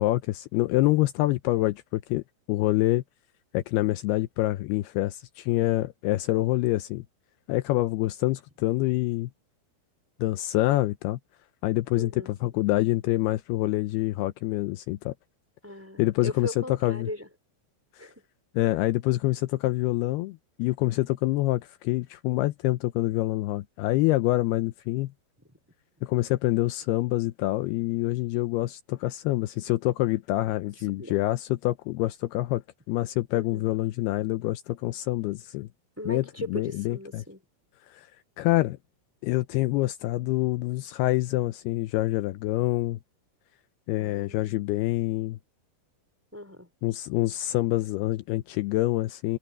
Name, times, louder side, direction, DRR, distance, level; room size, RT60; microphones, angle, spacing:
voice 1, 0.0-2.2 2.5-3.0 3.5-7.0 7.5-9.3 10.2-11.2 11.6-12.1 12.4-15.1 16.0-17.1 17.9-18.1 18.6-25.1 26.0-32.6 32.9-35.7 36.1-37.2 37.9-38.1 38.4-38.8 39.2-43.0 43.9-45.4 46.8-49.4, left 17 dB, 80° left, 2.6 m, -26 dB
voice 2, 12.0-12.5 15.6-17.3 18.0-18.2 31.0-31.2 33.3-33.6 36.0-37.4 44.0-44.7 46.3-46.7, left 1 dB, 5° right, 4.3 m, -38 dB
omnidirectional pair, 4.8 m